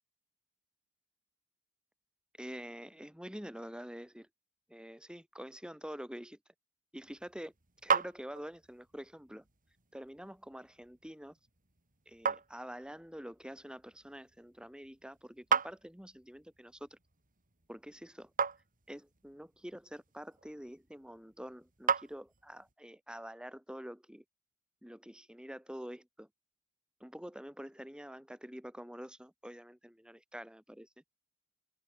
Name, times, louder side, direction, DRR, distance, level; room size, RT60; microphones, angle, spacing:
voice 1, 2.4-4.3 4.7-6.4 6.9-7.5 7.8-9.4 9.9-11.4 12.1-17.0 17.7-18.3 18.9-24.2 24.8-26.3 27.0-30.9, equal, 5° right, 4.4 m, -47 dB
sound 1, 7.0-22.7, right 6 dB, 40° right, 5.5 m, -39 dB
open air
head